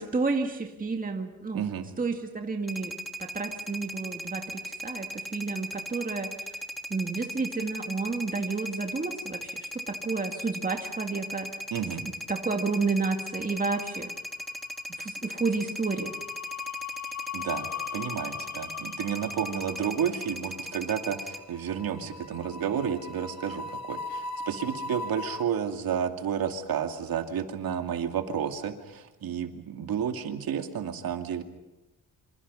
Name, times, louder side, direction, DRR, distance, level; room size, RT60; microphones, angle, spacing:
voice 1, 0.0-1.6 2.0-6.3 6.9-11.5 12.0-14.2 15.0-16.2, right 4 dB, 25° right, 4 dB, 2.0 m, -31 dB
voice 2, 1.5-1.9 11.7-12.1 17.3-31.4, right 8 dB, 75° right, 5 dB, 2.5 m, -31 dB
sound 1, 2.6-21.4, equal, ahead, 2.2 m, -38 dB
sound 2, 13.4-14.2 14.4-14.7 15.9-25.4, left 5 dB, 50° left, 1.6 m, -39 dB
27.0 x 26.5 x 5.6 m, 1.0 s
wide cardioid pair, 135°, 35 cm